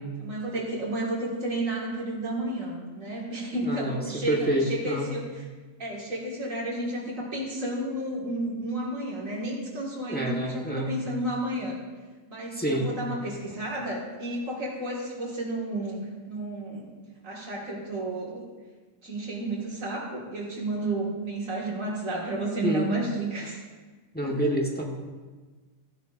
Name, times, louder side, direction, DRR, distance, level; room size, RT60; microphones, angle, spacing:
voice 1, 0.2-5.4 5.8-11.8 12.3-16.9 17.2-18.4 19.0-23.6 24.2-24.3, right 1 dB, 85° right, -4 dB, 2.2 m, -32 dB
voice 2, 3.6-5.1 10.1-10.9 12.5-12.9 22.6-22.9 24.1-24.8, equal, 10° left, -1 dB, 1.1 m, -27 dB
15.0 x 10.5 x 2.5 m, 1.3 s
omnidirectional pair, 1.3 m